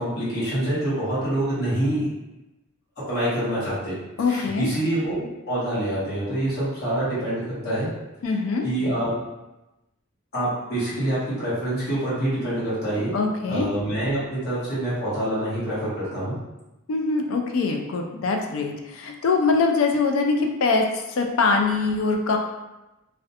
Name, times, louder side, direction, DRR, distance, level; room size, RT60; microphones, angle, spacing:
voice 1, 0.0-2.1 3.1-4.0 4.3-7.9 8.3-9.1 10.3-13.1 13.5-16.4, right 1 dB, 50° left, -10 dB, 1.0 m, -26 dB
voice 2, 4.2-4.7 8.2-8.7 13.1-13.7 16.9-22.4, left 4 dB, 70° left, 3 dB, 0.3 m, -23 dB
2.4 x 2.1 x 2.7 m, 0.99 s
head